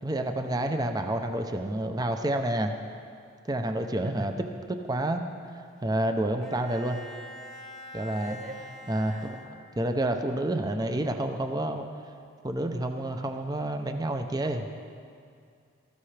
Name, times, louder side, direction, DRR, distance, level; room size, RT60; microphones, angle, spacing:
voice 1, 0.0-2.7 3.5-4.3 4.7-5.2 5.8-7.0 7.9-8.4 8.9-11.9 12.4-14.6, right 1 dB, 20° right, 5 dB, 0.6 m, -29 dB
Bowed string instrument, 6.4-10.1, left 1 dB, ahead, 1.0 m, -46 dB
voice 2, 8.2-9.3 14.4-14.7, right 2 dB, 40° right, 3 dB, 1.1 m, -41 dB
19.5 x 14.0 x 3.3 m, 2.3 s
head